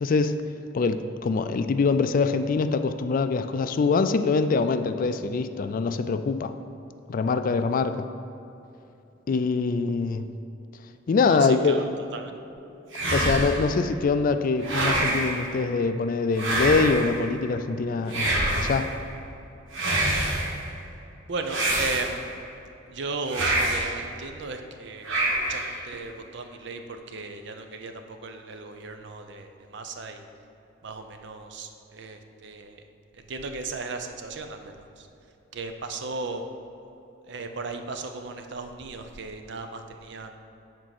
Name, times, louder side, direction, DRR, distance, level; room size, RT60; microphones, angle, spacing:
voice 1, 0.0-0.4 0.7-6.5 7.1-8.1 9.3-10.3 11.1-11.9 13.1-18.9, left 4 dB, 45° left, 10 dB, 0.3 m, -24 dB
voice 2, 11.2-11.9 12.1-12.3 21.3-22.3 22.9-30.3 30.8-32.8 33.1-35.1 35.5-36.5 37.3-40.4, right 3 dB, 65° right, 6 dB, 0.6 m, -36 dB
sound 1, 12.9-13.7 14.6-15.4 16.3-17.2 18.1-18.9 19.7-20.5 21.5-22.4 23.3-24.0 25.0-25.7, right 1 dB, 90° right, 1.5 m, -26 dB
7.5 x 4.6 x 5.8 m, 2.9 s
head